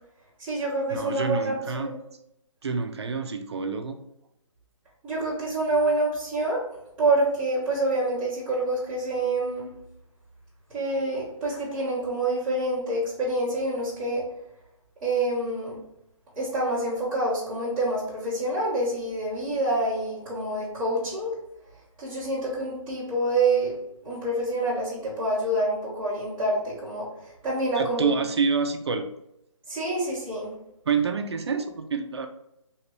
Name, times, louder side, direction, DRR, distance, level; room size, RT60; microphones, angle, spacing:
voice 1, 0.4-2.0 5.0-6.6 7.0-9.7 10.7-14.2 15.0-15.8 16.4-21.3 22.0-23.7 24.0-28.1 29.7-30.5, right 2 dB, 10° right, -12 dB, 1.1 m, -27 dB
voice 2, 0.9-1.9 2.6-4.0 27.8-29.1 30.9-32.3, right 5 dB, 50° right, 7 dB, 0.4 m, -27 dB
2.9 x 2.8 x 3.1 m, 0.82 s
hypercardioid pair, 170°, 17 cm